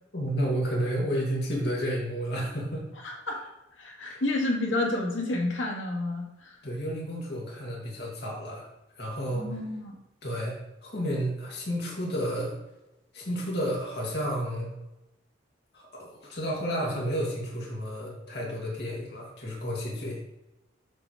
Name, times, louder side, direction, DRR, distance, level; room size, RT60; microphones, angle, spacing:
voice 1, 0.1-2.8 4.0-4.2 6.6-8.7 9.0-9.5 10.2-12.5 13.1-14.7 15.7-20.2, equal, 55° left, -4 dB, 2.2 m, -31 dB
voice 2, 3.0-3.4 3.8-6.6 9.3-9.9, left 2 dB, 85° left, -1 dB, 2.0 m, -30 dB
7.4 x 3.5 x 6.3 m, 0.95 s
head